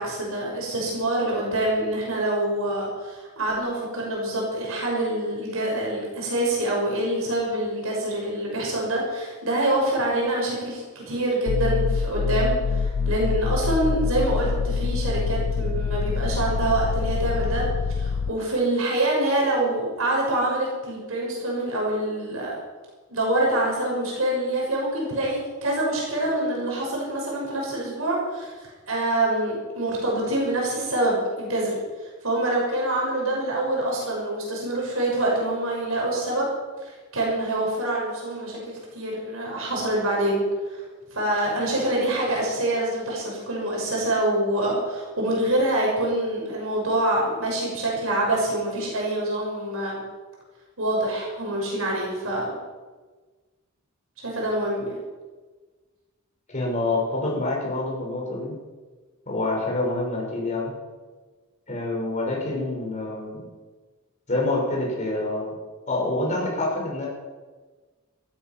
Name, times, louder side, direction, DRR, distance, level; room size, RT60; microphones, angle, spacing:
voice 1, 0.0-17.7 18.0-22.6 23.1-36.5 36.8-40.8 41.1-50.0 50.8-52.6 54.2-54.9, right 1 dB, 75° right, -2 dB, 6.1 m, -26 dB
sound 1, 11.5-18.3, left 5 dB, 80° left, 0.5 m, -25 dB
voice 2, 56.5-58.5 59.3-60.7 61.7-63.4 64.3-65.5 65.9-67.1, left 2 dB, 35° left, -2 dB, 6.0 m, -26 dB
15.5 x 14.0 x 6.1 m, 1.3 s
head